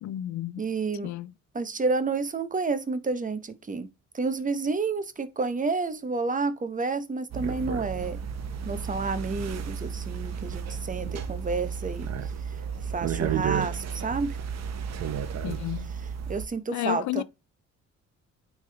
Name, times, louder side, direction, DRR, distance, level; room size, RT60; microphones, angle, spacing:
voice 1, 0.0-0.6 1.0-1.3 15.4-15.9 16.7-17.2, left 14 dB, 70° left, 0.5 m, -32 dB
voice 2, 0.6-1.1 1.5-3.9 4.1-8.2 8.6-12.1 12.8-14.4 16.3-17.2, right 4 dB, 25° right, 0.8 m, -30 dB
sound 1, 7.3-16.5, right 7 dB, 60° right, 0.9 m, -32 dB
8.9 x 3.6 x 3.3 m
cardioid pair, 90°, 30 cm